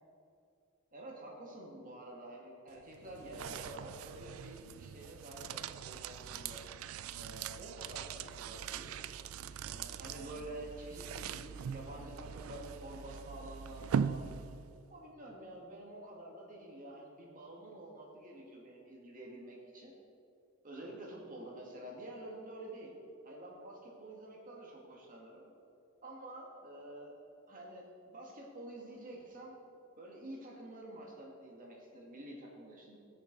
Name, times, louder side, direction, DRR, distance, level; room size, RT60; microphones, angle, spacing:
voice 1, 0.9-6.6 7.2-9.0 9.6-14.3 14.8-20.0 20.6-22.9 23.2-25.5 26.0-27.2 27.5-29.6 30.0-33.0, right 1 dB, 40° right, -2 dB, 1.9 m, -49 dB
sound 1, 2.7-14.9, right 7 dB, 85° right, 0.4 m, -41 dB
18.5 x 6.7 x 4.0 m, 2.6 s
head